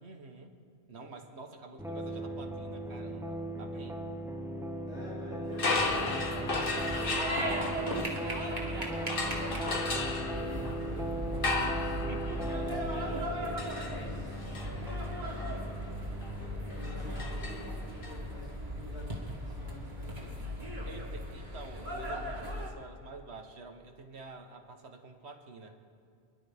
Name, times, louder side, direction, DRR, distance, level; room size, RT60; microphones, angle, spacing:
voice 1, 0.0-0.5 0.9-4.0 11.6-12.6 20.8-25.8, right 3 dB, 70° right, 5 dB, 1.5 m, -48 dB
sound 1, 1.8-18.5, right 1 dB, 5° right, 0.8 m, -39 dB
voice 2, 4.9-20.6, equal, 75° left, -9 dB, 3.6 m, -49 dB
sound 2, 5.5-8.6 9.1-18.1, left 3 dB, 55° left, 1.3 m, -36 dB
sound 3, 5.8-22.7, equal, 45° right, 1.9 m, -37 dB
27.5 x 11.5 x 3.5 m, 2.3 s
omnidirectional pair, 1.1 m